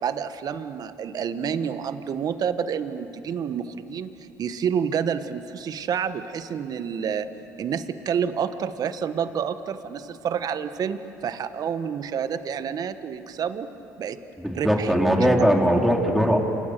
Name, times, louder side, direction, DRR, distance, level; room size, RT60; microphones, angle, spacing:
voice 1, 0.0-7.3 7.6-14.2 14.5-15.2, right 7 dB, 50° right, 10 dB, 1.5 m, -29 dB
voice 2, 14.4-16.4, equal, ahead, 0 dB, 4.6 m, -20 dB
29.5 x 27.5 x 6.9 m, 2.8 s
supercardioid pair, 75°, 8 cm